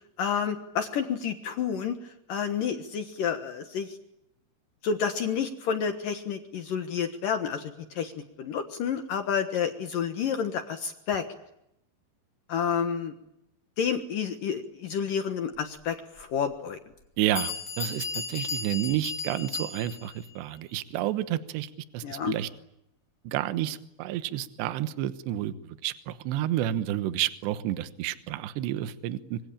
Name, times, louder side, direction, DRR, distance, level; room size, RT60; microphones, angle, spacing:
voice 1, 0.2-4.0 4.8-11.3 12.5-13.1 13.8-16.8 22.0-22.3, left 7 dB, 65° left, 6 dB, 2.4 m, -30 dB
Bell, 16.2-16.3 17.0-17.1 17.4-20.2, left 5 dB, 30° left, 2.3 m, -35 dB
voice 2, 17.2-21.7 21.9-22.5 23.2-25.5 25.8-29.4, right 13 dB, 70° right, 12 dB, 3.1 m, -30 dB
25.5 x 24.5 x 8.8 m, 0.80 s
omnidirectional pair, 5.4 m